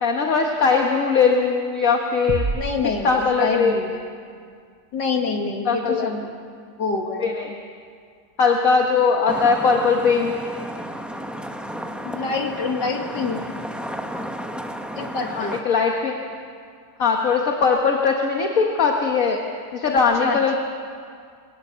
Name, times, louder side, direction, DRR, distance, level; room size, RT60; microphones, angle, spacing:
voice 1, 0.0-2.5 2.8-3.8 5.7-6.1 6.9-7.6 8.4-10.3 15.3-16.2 17.0-19.4 19.7-20.6, left 5 dB, 55° left, 2 dB, 1.7 m, -20 dB
sound 1, 2.3-4.0, right 4 dB, 55° right, 0.3 m, -30 dB
voice 2, 2.5-4.0 4.9-6.3 6.8-7.3 12.0-13.4 15.0-15.6 20.2-20.6, left 4 dB, 90° left, 3 dB, 2.6 m, -26 dB
sound 2, 9.3-15.6, equal, ahead, 0.6 m, -32 dB
22.0 x 18.0 x 7.5 m, 2.2 s
omnidirectional pair, 1.8 m